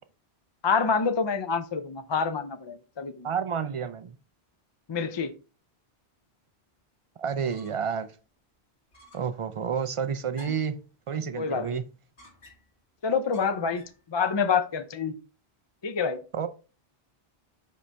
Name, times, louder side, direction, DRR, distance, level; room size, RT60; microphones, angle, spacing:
voice 1, 0.6-3.3 4.9-5.3 10.5-10.6 11.4-11.8 13.0-15.1 15.8-16.2, left 5 dB, 45° left, 0.3 m, -27 dB
voice 2, 3.2-4.2 7.2-8.1 9.1-10.8 11.1-11.8 16.4-16.5, right 7 dB, 60° right, 0.3 m, -30 dB
sound 1, 7.2-8.0 8.3-8.4 8.9-9.4 10.3-10.8 12.2-12.8 13.3-14.0, left 2 dB, 85° left, 2.1 m, -53 dB
5.7 x 5.1 x 3.3 m
omnidirectional pair, 1.1 m